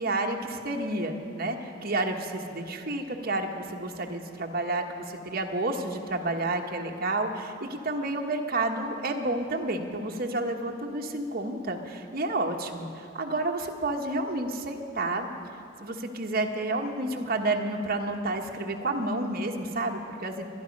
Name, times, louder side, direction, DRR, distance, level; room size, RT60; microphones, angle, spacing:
voice 1, 0.0-15.3 15.8-20.5, right 2 dB, 50° right, 2 dB, 1.3 m, -30 dB
24.0 x 10.5 x 5.3 m, 2.5 s
head